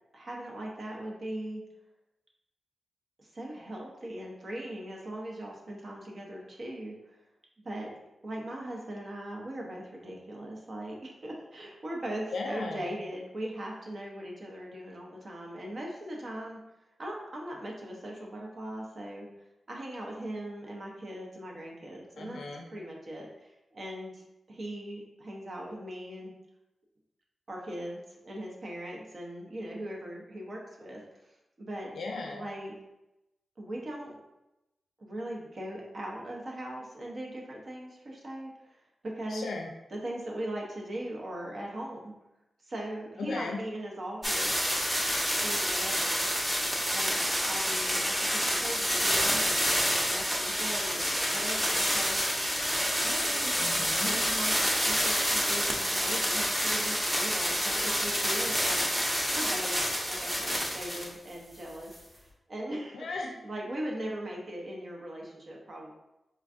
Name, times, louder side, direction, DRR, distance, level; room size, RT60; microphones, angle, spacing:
voice 1, 0.1-1.6 3.2-7.2 7.6-8.0 8.2-16.6 17.0-19.3 19.7-22.4 22.7-26.3 27.5-31.0 31.6-31.9 32.3-32.7 33.6-34.1 35.0-38.8 39.1-39.5 39.9-42.1 42.7-44.5 45.3-46.3 46.9-52.4 53.0-53.7 54.0-58.9 59.3-63.0 63.4-65.9, right 1 dB, 55° right, -1 dB, 0.7 m, -40 dB
voice 2, 12.3-12.9 22.2-22.7 31.9-32.4 39.3-39.7 43.2-43.6 53.5-54.1 62.9-63.3, left 3 dB, 90° left, 1 dB, 0.4 m, -36 dB
sound 1, 44.2-61.1 61.9-62.0, equal, 15° right, 0.8 m, -28 dB
4.4 x 2.3 x 2.5 m, 0.93 s
cardioid pair, 75°, 0 cm